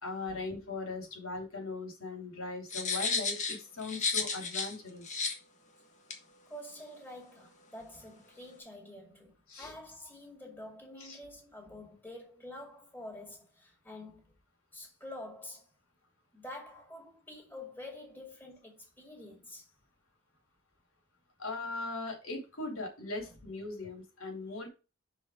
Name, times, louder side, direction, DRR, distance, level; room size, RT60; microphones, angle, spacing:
voice 1, 0.0-5.0 9.5-9.7 11.0-11.2 21.4-24.7, left 3 dB, 80° left, 3.2 m, -39 dB
sound 1, 2.7-4.7 5.0-5.3 6.1-6.2, left 4 dB, 35° left, 1.4 m, -32 dB
voice 2, 6.5-14.3 14.7-15.7 16.3-19.7 23.2-23.4, left 1 dB, 10° left, 2.2 m, -48 dB
5.9 x 4.9 x 5.0 m
head